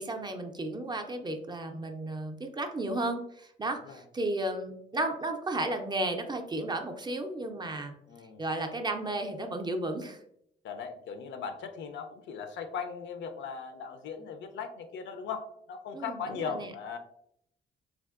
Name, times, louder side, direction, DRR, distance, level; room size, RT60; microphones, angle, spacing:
voice 1, 0.0-7.9 8.4-10.2 15.9-16.7, right 2 dB, 20° right, 4 dB, 0.4 m, -33 dB
voice 2, 8.1-8.4 10.6-17.0, left 6 dB, 70° left, 7 dB, 0.5 m, -38 dB
3.4 x 2.5 x 2.4 m, 0.73 s
cardioid pair, 90°, 20 cm